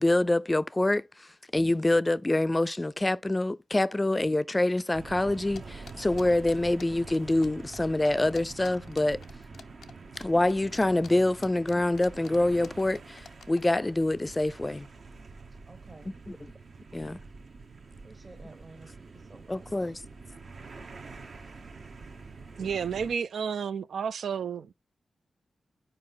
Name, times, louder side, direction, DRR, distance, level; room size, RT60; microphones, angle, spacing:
voice 1, 0.0-9.2 10.2-14.9 16.1-16.5 16.9-17.2 19.5-20.0, left 2 dB, 20° left, 0.4 m, -26 dB
sound 1, 4.9-23.1, right 4 dB, 65° right, 0.9 m, -46 dB
sound 2, 5.6-7.5 7.7-7.8 8.0-13.7, left 6 dB, 90° left, 0.4 m, -48 dB
voice 2, 15.6-16.2 16.7-16.8 17.1-17.2 18.0-20.0, right 2 dB, 45° right, 1.1 m, -53 dB
voice 3, 22.6-24.7, right 7 dB, 85° right, 0.3 m, -31 dB
5.3 x 4.5 x 5.6 m
cardioid pair, 70°, 0 cm